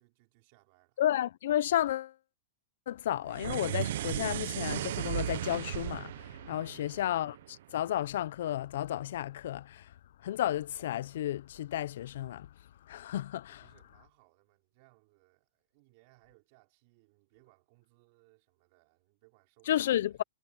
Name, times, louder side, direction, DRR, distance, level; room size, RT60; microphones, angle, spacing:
voice 1, 0.0-1.1 6.5-7.0 13.5-20.2, right 25 dB, 40° right, 4.7 m, -66 dB
voice 2, 1.0-2.2 2.9-12.5 12.8-13.6 19.7-20.2, left 12 dB, 60° left, 0.4 m, -32 dB
sound 1, 3.3-7.7, right 12 dB, 55° right, 0.6 m, -36 dB
hypercardioid pair, 165°, 0 cm